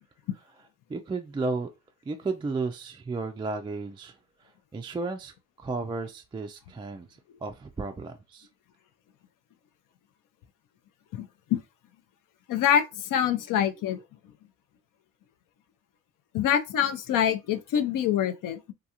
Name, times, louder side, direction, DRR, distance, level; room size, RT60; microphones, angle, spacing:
voice 1, 0.6-1.7 2.1-7.1 7.4-8.5, right 3 dB, 15° right, 0.3 m, -34 dB
voice 2, 11.1-11.6 12.5-12.8 13.1-14.0 16.3-18.7, left 9 dB, 60° left, 0.5 m, -25 dB
2.4 x 2.4 x 2.8 m
supercardioid pair, 60°, 36 cm